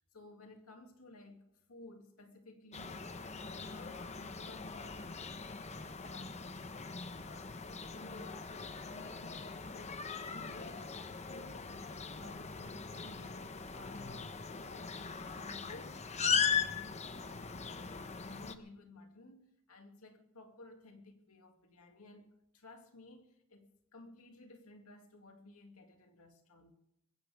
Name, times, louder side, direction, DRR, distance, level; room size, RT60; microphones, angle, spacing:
voice 1, 0.1-1.4 1.7-3.0 3.3-5.2 5.6-6.9 7.2-16.0 16.4-26.7, left 2 dB, 75° left, 2.5 m, -56 dB
sound 1, 2.7-18.5, left 6 dB, 30° left, 0.9 m, -39 dB
21.5 x 16.5 x 3.6 m
head